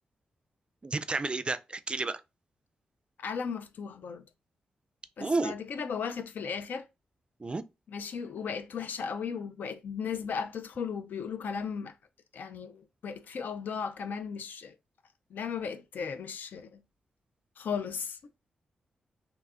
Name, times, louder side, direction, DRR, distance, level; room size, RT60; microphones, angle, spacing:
voice 1, 0.8-2.2 5.2-5.5 7.4-7.6, right 3 dB, 30° right, 0.3 m, -31 dB
voice 2, 3.2-4.2 5.2-6.9 7.9-11.9 12.3-14.8 15.3-16.8 17.6-18.2, left 6 dB, 70° left, 0.3 m, -36 dB
2.8 x 2.3 x 3.3 m
supercardioid pair, 45°, 3 cm